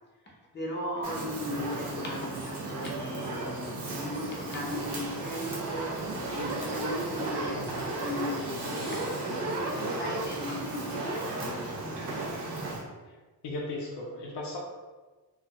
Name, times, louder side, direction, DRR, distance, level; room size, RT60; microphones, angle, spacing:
voice 1, 0.2-12.3, left 1 dB, 25° left, -2 dB, 0.5 m, -37 dB
Fire, 1.0-12.8, right 2 dB, 70° right, 0.8 m, -34 dB
voice 2, 13.4-14.6, left 2 dB, 80° left, -2 dB, 0.6 m, -36 dB
2.1 x 2.1 x 2.8 m, 1.3 s
wide cardioid pair, 110°, 41 cm